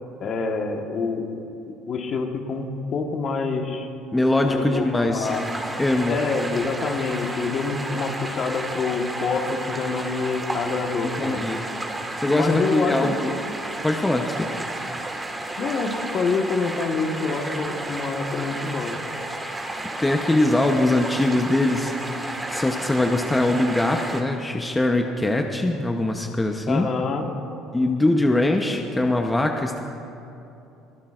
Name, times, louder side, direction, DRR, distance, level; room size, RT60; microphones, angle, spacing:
voice 1, 0.2-1.4 1.9-2.7 2.9-3.9 4.5-5.4 6.1-11.6 12.2-13.4 15.6-19.0 26.7-27.2, left 4 dB, 50° left, 4 dB, 1.4 m, -26 dB
voice 2, 4.1-5.3 5.8-6.2 11.2-11.6 12.2-13.4 13.8-14.5 20.0-21.9 22.2-26.9 27.7-29.8, left 2 dB, 10° left, 3 dB, 0.8 m, -22 dB
sound 1, 5.2-24.2, right 2 dB, 15° right, 1.7 m, -32 dB
23.0 x 15.0 x 2.5 m, 2.8 s
supercardioid pair, 100°, 0 cm